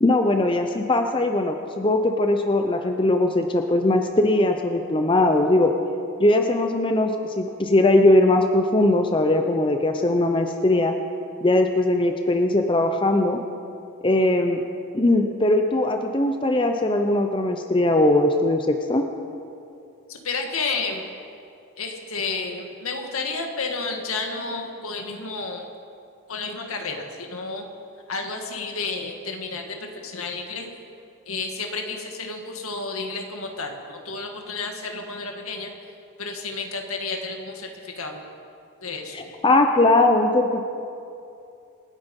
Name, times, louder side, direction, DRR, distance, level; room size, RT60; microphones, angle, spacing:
voice 1, 0.0-5.7 6.2-10.9 11.4-13.4 14.0-14.6 14.9-19.0 39.1-40.6, left 2 dB, 25° left, 5 dB, 0.7 m, -20 dB
voice 2, 20.1-21.1 21.8-25.6 26.3-27.7 28.1-30.7 31.3-35.7 36.2-38.2 38.8-39.2, left 4 dB, 75° left, 3 dB, 2.0 m, -31 dB
27.0 x 9.4 x 5.4 m, 2.6 s
head